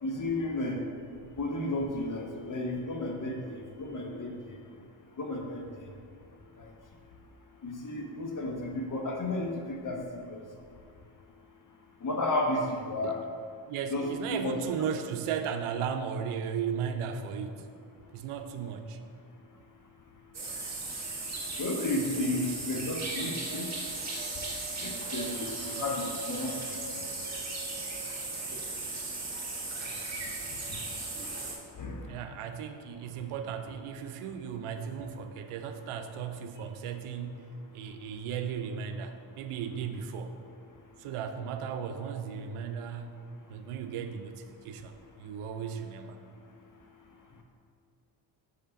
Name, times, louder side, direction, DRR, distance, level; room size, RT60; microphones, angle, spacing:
voice 1, 0.0-0.8 1.4-4.3 5.2-5.7 6.6-6.7 7.6-10.4 12.0-13.2 13.9-14.6 21.6-23.7 24.8-26.5 30.7-30.8 31.8-32.2, left 2 dB, 40° left, 2 dB, 1.0 m, -33 dB
voice 2, 13.7-17.7 18.1-19.0 32.0-40.4 41.0-43.2 43.5-46.2, right 7 dB, 85° right, 7 dB, 0.6 m, -36 dB
sound 1, 20.3-31.6, right 3 dB, 30° right, 1.5 m, -36 dB
5.6 x 3.3 x 5.6 m, 2.3 s
cardioid pair, 65°, 50 cm